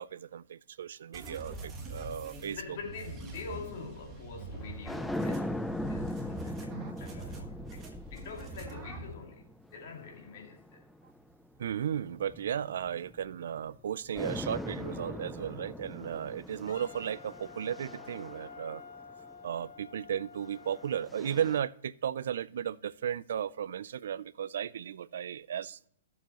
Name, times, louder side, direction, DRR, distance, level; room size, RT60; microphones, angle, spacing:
voice 1, 0.0-2.6 11.6-18.8 19.4-25.8, right 9 dB, 70° right, 0.4 m, -35 dB
sound 1, 1.1-9.1, right 3 dB, 15° right, 1.3 m, -44 dB
voice 2, 2.5-5.6 5.9-10.8, left 5 dB, 50° left, 2.4 m, -45 dB
sound 2, 4.6-11.2 11.9-13.8 14.1-19.5 20.5-21.6, left 1 dB, 5° left, 0.4 m, -40 dB
Wind instrument woodwind instrument, 16.7-21.1, left 6 dB, 75° left, 0.9 m, -50 dB
15.0 x 7.0 x 3.0 m
hypercardioid pair, 160°, 0 cm